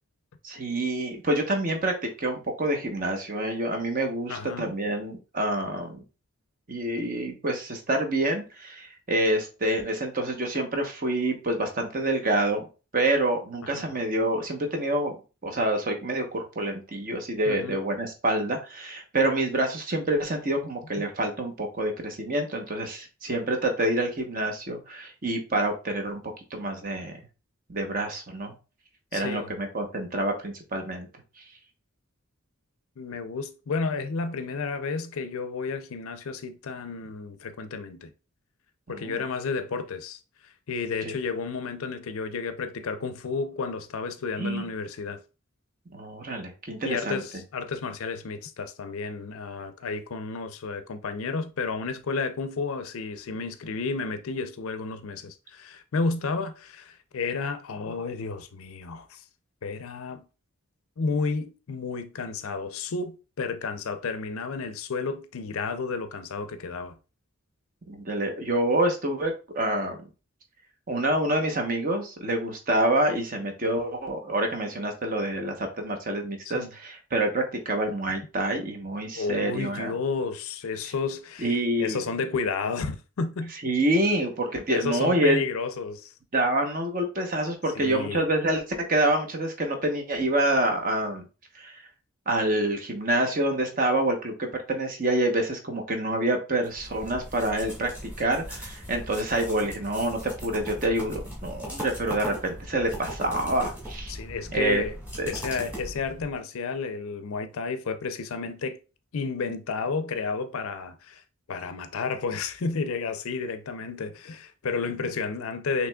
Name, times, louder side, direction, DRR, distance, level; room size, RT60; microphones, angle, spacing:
voice 1, 0.4-6.0 6.7-12.6 12.9-15.1 15.4-26.2 26.5-27.1 27.7-28.5 29.1-31.1 38.9-39.2 41.0-41.1 44.4-44.7 45.9-47.2 67.9-70.0 70.9-79.9 81.4-82.0 83.6-85.4 86.3-88.6 88.9-91.2 91.5-91.7 92.3-97.9 98.2-104.1 104.5-104.8 105.2-105.3, right 1 dB, 40° right, 0.9 m, -27 dB
voice 2, 4.3-4.7 13.7-13.9 17.5-17.8 29.1-29.5 33.0-38.1 38.9-45.2 46.8-59.2 59.6-60.3 61.0-67.0 76.5-76.7 79.1-83.5 84.7-86.1 87.7-88.3 104.1-105.0 105.3-108.8 109.1-111.2 111.5-115.9, left 4 dB, 70° left, 0.5 m, -32 dB
sound 1, 96.6-106.4, equal, 5° right, 2.0 m, -39 dB
5.9 x 3.1 x 2.2 m
head